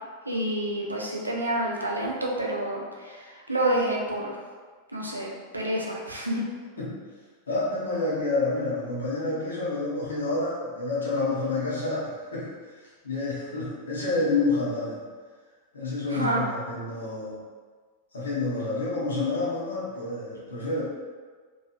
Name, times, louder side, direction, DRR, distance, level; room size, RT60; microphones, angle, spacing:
voice 1, 0.3-4.4 4.9-6.4 16.1-16.4, right 1 dB, 85° right, -2 dB, 0.5 m, -28 dB
voice 2, 7.5-12.5 13.0-15.0 15.7-17.3 18.1-20.8, left 3 dB, 70° left, -7 dB, 0.9 m, -28 dB
2.9 x 2.3 x 2.5 m, 1.5 s
figure-of-eight pair, 90°, 0 cm